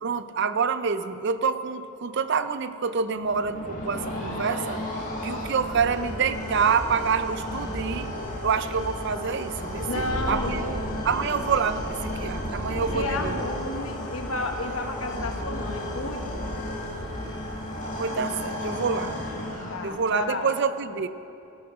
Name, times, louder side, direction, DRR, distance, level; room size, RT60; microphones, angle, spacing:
voice 1, 0.0-4.8 5.2-8.1 8.4-13.4 18.0-19.2 19.8-21.1, right 5 dB, 50° right, 12 dB, 0.5 m, -27 dB
sound 1, 3.2-20.1, left 1 dB, 35° left, 2.0 m, -33 dB
voice 2, 9.9-10.8 12.9-16.4 19.7-20.5, left 2 dB, 70° left, 3 dB, 1.3 m, -32 dB
14.0 x 9.5 x 6.2 m, 2.7 s
head